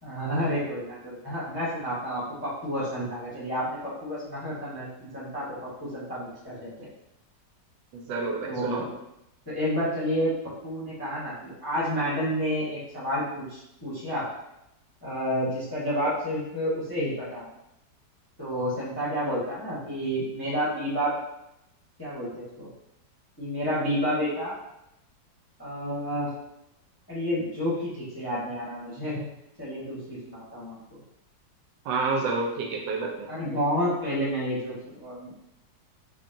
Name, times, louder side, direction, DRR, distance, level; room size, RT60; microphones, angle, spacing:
voice 1, 0.0-5.5 5.8-6.9 8.4-8.9 9.5-10.3 10.6-14.2 15.0-17.5 18.4-21.1 22.0-22.7 23.4-24.5 25.6-26.3 27.1-29.2 29.6-31.0 33.3-35.4, equal, 20° left, -9 dB, 0.6 m, -30 dB
voice 2, 7.9-8.8 31.8-33.3, right 3 dB, 85° right, -1 dB, 1.3 m, -29 dB
4.8 x 2.5 x 2.6 m, 0.85 s
omnidirectional pair, 2.0 m